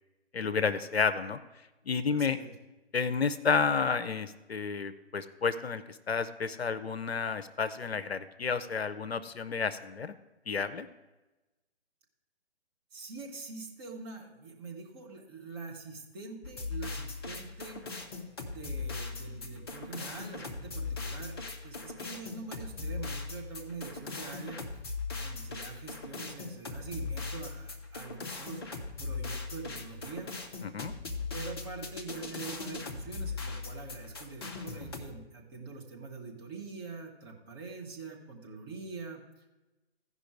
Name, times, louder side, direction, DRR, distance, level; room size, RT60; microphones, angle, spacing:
voice 1, 0.3-1.4 1.9-2.4 2.9-10.1 10.5-10.9 30.6-30.9, left 5 dB, 65° left, 11 dB, 0.6 m, -31 dB
voice 2, 2.1-2.5 12.9-17.9 18.4-24.6 25.2-28.6 29.0-30.3 31.3-39.2, right 4 dB, 20° right, -1 dB, 1.1 m, -44 dB
sound 1, 16.4-35.0, left 4 dB, 25° left, 0.6 m, -39 dB
15.0 x 5.4 x 4.8 m, 1.1 s
figure-of-eight pair, 135°, 33 cm